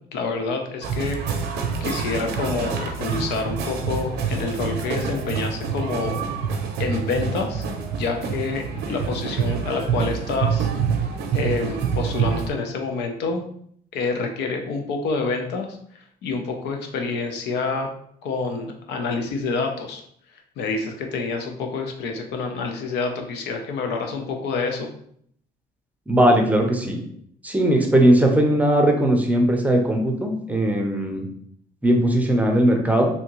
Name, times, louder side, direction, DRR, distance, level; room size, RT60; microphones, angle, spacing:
voice 1, 0.1-6.2 6.8-7.6 7.9-10.7 11.3-13.4 13.9-15.8 16.2-17.9 18.2-20.0 20.6-24.9, left 4 dB, 80° left, 4 dB, 0.6 m, -27 dB
sound 1, 0.8-12.5, right 6 dB, 75° right, 0.6 m, -26 dB
voice 2, 26.1-27.0 27.4-31.3 31.8-33.1, right 1 dB, 10° right, 2 dB, 0.6 m, -19 dB
3.4 x 2.8 x 2.9 m, 0.66 s
cardioid pair, 110°, 17 cm